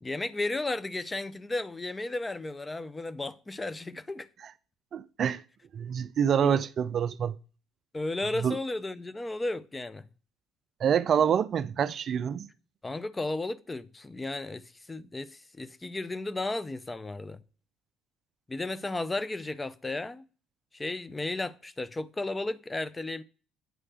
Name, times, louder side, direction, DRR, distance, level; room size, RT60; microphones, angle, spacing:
voice 1, 0.0-4.3 6.4-6.6 7.9-10.1 12.8-17.4 18.5-20.2 20.7-23.2, left 2 dB, 20° left, 0.5 m, -34 dB
voice 2, 4.9-5.4 5.7-7.4 8.4-8.6 10.8-12.5, right 8 dB, 45° right, 0.3 m, -26 dB
9.1 x 3.2 x 6.3 m
figure-of-eight pair, 55°, 0 cm